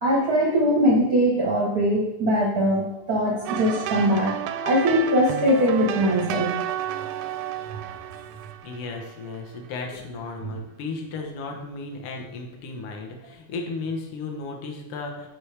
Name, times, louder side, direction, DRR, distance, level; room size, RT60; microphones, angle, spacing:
voice 1, 0.0-4.3 4.6-6.5, equal, 60° right, -3 dB, 0.9 m, -21 dB
sound 1, 3.5-9.4, right 10 dB, 85° right, 2.0 m, -31 dB
voice 2, 8.6-15.3, left 3 dB, 60° left, 1 dB, 1.7 m, -34 dB
10.5 x 4.7 x 3.3 m, 0.94 s
omnidirectional pair, 3.4 m